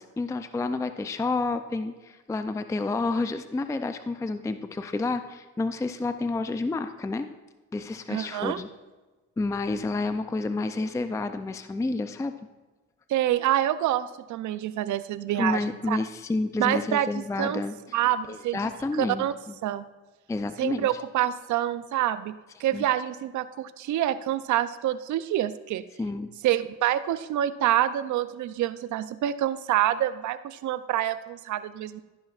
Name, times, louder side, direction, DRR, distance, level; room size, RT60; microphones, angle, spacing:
voice 1, 0.0-7.3 7.7-8.7 9.4-12.3 15.4-18.0 18.3-19.6 20.3-20.9 22.7-22.8 26.0-26.3, left 3 dB, 10° left, 9 dB, 0.4 m, -30 dB
voice 2, 8.1-8.6 13.1-15.6 15.9-16.0 16.6-17.6 17.9-18.6 19.0-19.3 19.6-19.9 20.6-25.8 26.4-32.0, right 12 dB, 70° right, 13 dB, 0.6 m, -27 dB
13.5 x 10.0 x 2.4 m, 1.2 s
cardioid pair, 90°, 30 cm